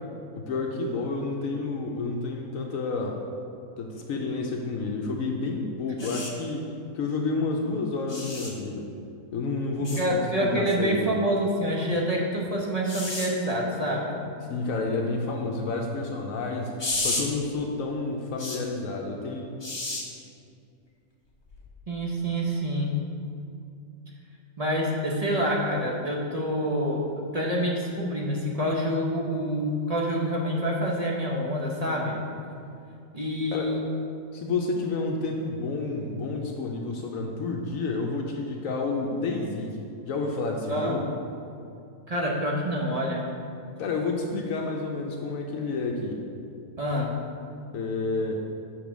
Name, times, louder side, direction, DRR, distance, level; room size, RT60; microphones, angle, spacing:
voice 1, 0.4-3.2 3.8-6.7 6.9-8.9 9.3-11.2 14.5-19.4 33.5-33.7 34.3-39.8 40.0-41.1 43.8-46.2 47.7-48.4, left 3 dB, 70° left, 1 dB, 1.0 m, -30 dB
sound 1, 6.0-6.3 8.1-8.5 9.8-10.0 12.9-13.3 16.8-17.2 18.4-18.6 19.6-20.0 21.5-21.7, left 2 dB, 25° left, 0.7 m, -31 dB
voice 2, 9.8-14.2 21.9-22.9 24.6-32.2 33.1-33.8 40.7-41.1 42.1-43.3 46.8-47.1, equal, 35° right, -3 dB, 0.7 m, -27 dB
7.0 x 4.0 x 6.1 m, 2.5 s
omnidirectional pair, 1.5 m